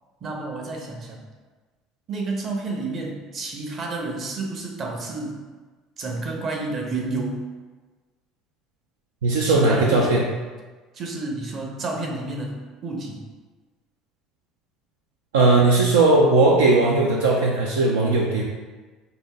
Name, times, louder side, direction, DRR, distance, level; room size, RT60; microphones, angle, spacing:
voice 1, 0.2-1.2 2.1-5.4 6.0-7.5 9.4-10.2 10.9-12.6 12.8-13.2, right 2 dB, 40° right, 1 dB, 0.8 m, -30 dB
voice 2, 9.2-10.2 15.3-18.4, right 2 dB, 75° right, -2 dB, 0.3 m, -18 dB
5.2 x 2.7 x 2.2 m, 1.3 s
figure-of-eight pair, 65°, 0 cm